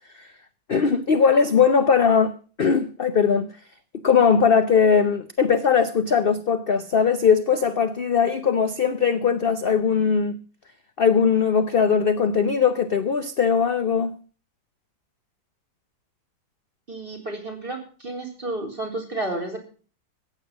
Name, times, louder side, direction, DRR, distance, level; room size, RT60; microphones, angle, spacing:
voice 1, 0.7-3.5 4.0-10.4 11.0-14.1, left 6 dB, 45° left, 0.7 m, -20 dB
voice 2, 16.9-19.6, right 2 dB, 30° right, 4.2 m, -31 dB
15.0 x 8.9 x 7.2 m
omnidirectional pair, 1.9 m